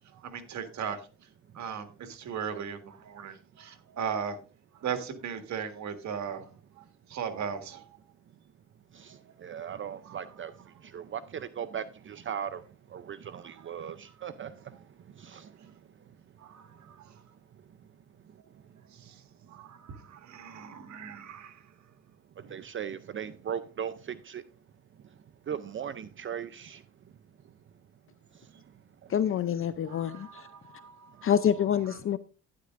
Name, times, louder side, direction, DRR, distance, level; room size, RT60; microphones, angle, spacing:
voice 1, 0.2-1.0 1.6-4.4 4.8-6.5 7.1-7.8 10.0-10.2 13.3-13.4 16.4-16.9 19.5-21.6 22.4-22.6 30.0-31.3, right 7 dB, 65° right, 1.8 m, -37 dB
voice 2, 8.9-10.5 10.8-12.6 12.9-14.5 15.2-15.5 22.5-24.4 25.5-26.8, right 8 dB, 40° right, 0.5 m, -38 dB
voice 3, 29.1-30.5 31.2-32.2, left 9 dB, 45° left, 0.5 m, -27 dB
11.5 x 10.0 x 2.5 m
cardioid pair, 90°, 30 cm